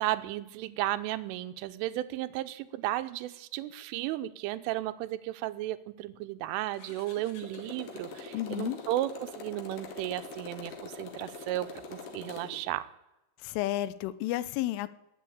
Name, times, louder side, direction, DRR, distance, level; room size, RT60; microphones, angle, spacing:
voice 1, 0.0-12.9, right 15 dB, 90° right, 14 dB, 3.3 m, -34 dB
Motorcycle, 6.7-12.6, left 4 dB, 55° left, 3.5 m, -44 dB
voice 2, 8.3-8.8 13.4-14.9, left 15 dB, 85° left, 16 dB, 3.3 m, -32 dB
19.5 x 8.3 x 8.7 m, 0.94 s
omnidirectional pair, 5.6 m